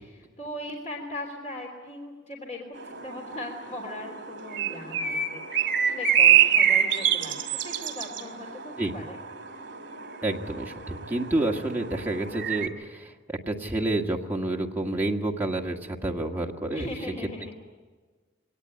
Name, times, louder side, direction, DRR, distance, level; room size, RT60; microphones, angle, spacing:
voice 1, 0.4-9.2 16.7-17.5, left 1 dB, 35° left, 0 dB, 3.2 m, -39 dB
sound 1, 2.8-12.7, right 8 dB, 65° right, 2.4 m, -26 dB
voice 2, 10.2-16.9, right 2 dB, 10° right, -1 dB, 1.7 m, -29 dB
24.0 x 18.5 x 9.8 m, 1.4 s
head